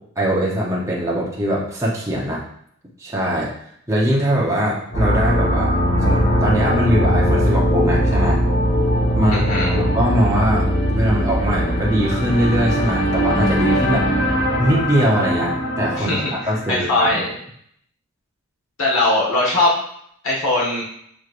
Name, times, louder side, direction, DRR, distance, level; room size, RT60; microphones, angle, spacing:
voice 1, 0.2-2.4 3.0-3.5 3.9-5.7 6.0-8.4 9.2-10.7 10.9-14.1 14.6-16.1 16.5-17.2, equal, 15° right, -4 dB, 0.7 m, -21 dB
sound 1, 4.9-16.8, equal, 45° left, 1.2 m, -20 dB
voice 2, 9.3-9.7 15.9-16.3 16.7-17.3 18.8-19.7 20.2-20.8, left 2 dB, 70° left, -4 dB, 1.3 m, -19 dB
6.1 x 3.1 x 2.5 m, 0.68 s
head